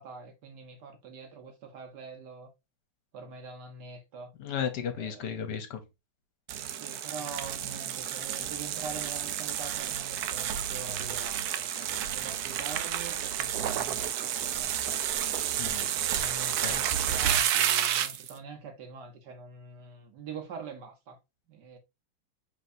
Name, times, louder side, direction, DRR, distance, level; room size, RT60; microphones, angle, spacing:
voice 1, 0.0-2.5 3.1-4.3 4.9-5.4 6.7-15.0 15.9-21.2 21.5-21.8, right 4 dB, 60° right, 1.3 m, -44 dB
voice 2, 4.4-5.8 15.6-15.9 16.6-16.8, left 8 dB, 65° left, 1.3 m, -34 dB
sound 1, 6.5-18.3, right 10 dB, 80° right, 0.9 m, -30 dB
5.9 x 3.4 x 2.6 m
omnidirectional pair, 2.2 m